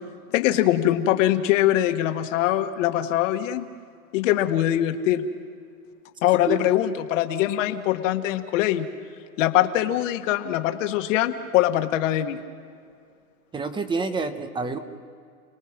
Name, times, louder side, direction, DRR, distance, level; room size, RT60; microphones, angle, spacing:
voice 1, 0.3-3.7 4.1-5.2 6.2-8.9 9.4-12.4, left 13 dB, 55° left, 7 dB, 1.6 m, -22 dB
voice 2, 13.5-14.8, right 4 dB, 10° right, 10 dB, 0.8 m, -28 dB
29.5 x 19.0 x 6.0 m, 2.3 s
hypercardioid pair, 135°, 44 cm